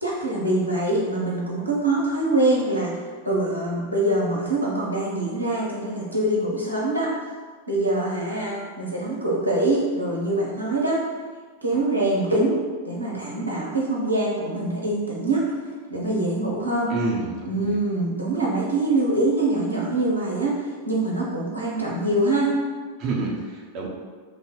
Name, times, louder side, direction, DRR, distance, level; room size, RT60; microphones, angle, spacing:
voice 1, 0.0-3.0 3.2-7.1 7.7-11.0 11.6-15.5 15.9-16.9 17.5-22.5, right 2 dB, 85° right, -5 dB, 0.7 m, -24 dB
voice 2, 16.9-17.8 23.0-23.9, right 3 dB, 35° right, -2 dB, 0.5 m, -28 dB
3.1 x 2.0 x 3.8 m, 1.5 s
figure-of-eight pair, 90°, 0 cm